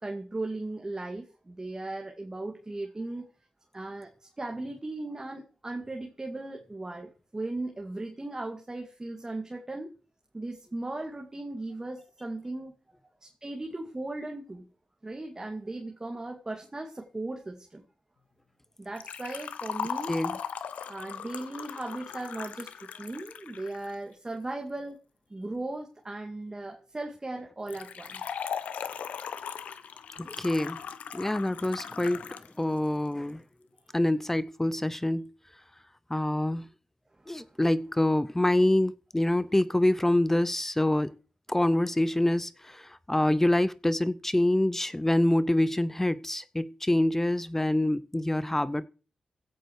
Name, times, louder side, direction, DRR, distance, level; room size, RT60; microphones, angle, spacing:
voice 1, 0.0-3.3 3.7-9.9 10.3-12.7 13.2-14.6 15.0-17.8 18.8-20.2 20.9-25.0 25.3-28.2 37.2-37.5, right 2 dB, 25° right, 2.5 m, -37 dB
Liquid, 19.0-23.9 27.7-32.5 32.8-32.9 33.8-33.9, left 7 dB, 85° left, 1.0 m, -38 dB
voice 2, 20.1-20.4 30.2-30.8 31.1-33.4 33.9-35.3 36.1-36.7 37.3-41.1 41.5-48.9, left 1 dB, 15° left, 0.7 m, -26 dB
16.0 x 8.1 x 4.8 m
cardioid pair, 60°, 2 cm